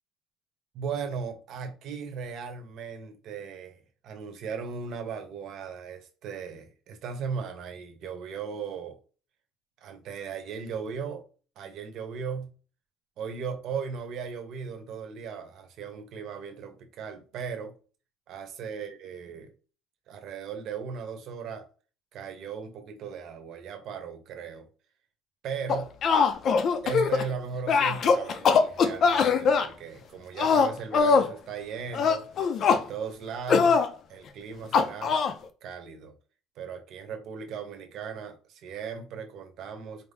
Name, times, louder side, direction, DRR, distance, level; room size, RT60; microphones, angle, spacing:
voice 1, 0.7-9.0 9.8-11.2 11.6-12.5 13.2-17.7 18.3-19.5 20.1-21.7 22.1-24.7 25.4-25.9 26.8-32.3 32.7-33.8 34.1-35.2 35.6-36.1 36.6-40.1, right 6 dB, 55° right, 0.9 m, -37 dB
sound 1, 25.7-27.3 27.7-29.7 30.4-31.3 31.9-32.8 33.5-33.9 34.7-35.3, left 5 dB, 40° left, 0.5 m, -22 dB
4.4 x 2.7 x 3.5 m
cardioid pair, 155°, 0 cm